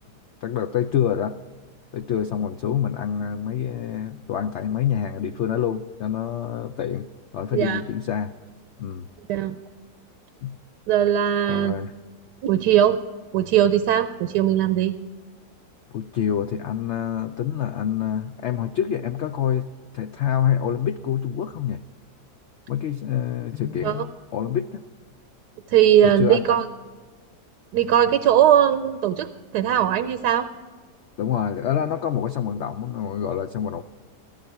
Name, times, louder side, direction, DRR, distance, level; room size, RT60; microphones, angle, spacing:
voice 1, 0.4-1.4 1.9-7.1 7.3-8.3 8.8-9.1 10.4-10.6 11.5-11.9 15.9-21.8 22.7-24.8 26.0-26.6 31.2-33.8, left 9 dB, 85° left, 9 dB, 0.6 m, -26 dB
voice 2, 10.9-11.7 12.4-13.0 13.3-14.9 23.8-24.0 25.7-26.6 27.7-29.3 29.5-30.5, right 10 dB, 85° right, 10 dB, 1.2 m, -19 dB
14.5 x 14.5 x 4.7 m, 1.4 s
omnidirectional pair, 1.8 m